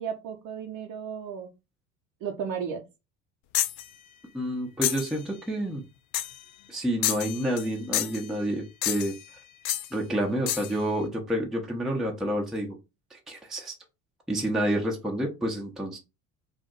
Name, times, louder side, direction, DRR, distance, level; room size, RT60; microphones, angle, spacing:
voice 1, 0.0-1.5 2.2-2.8, right 7 dB, 55° right, 1 dB, 0.7 m, -34 dB
sound 1, 3.5-3.9 4.8-5.1 6.1-6.4 7.0-7.7 7.9-8.3 8.8-9.2 9.7-9.9 10.5-10.7, left 13 dB, 75° left, 0.5 m, -29 dB
voice 2, 4.3-5.8 6.7-9.2 9.9-12.7 13.1-13.8 14.3-16.0, right 1 dB, ahead, -1 dB, 0.6 m, -29 dB
2.5 x 2.0 x 3.7 m, 0.27 s
hypercardioid pair, 70°, 41 cm